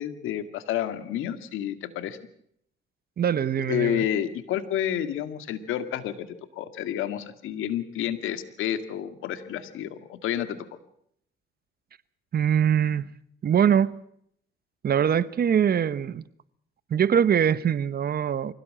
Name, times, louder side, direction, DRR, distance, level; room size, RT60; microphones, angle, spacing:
voice 1, 0.0-2.2 3.6-6.3 6.6-10.6, left 10 dB, 90° left, 2.0 m, -30 dB
voice 2, 3.2-4.1 12.3-13.1 13.4-14.0 14.8-16.2 16.9-18.5, right 8 dB, 50° right, 1.0 m, -23 dB
24.5 x 16.5 x 7.6 m
cardioid pair, 90°, 20 cm